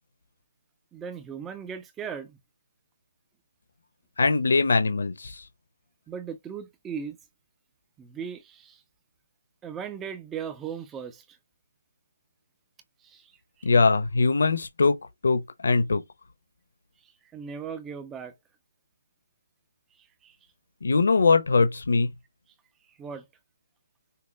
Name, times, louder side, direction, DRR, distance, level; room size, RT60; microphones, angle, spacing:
voice 1, 0.9-2.4 6.1-7.2 8.0-8.8 9.6-11.4 13.0-13.3 13.6-13.7 17.0-18.3 20.0-20.4 22.9-23.3, right 7 dB, 5° right, 0.5 m, -38 dB
voice 2, 4.2-5.4 13.6-16.0 20.8-22.1, left 4 dB, 60° left, 1.0 m, -22 dB
5.7 x 2.1 x 3.3 m
hypercardioid pair, 175°, 0 cm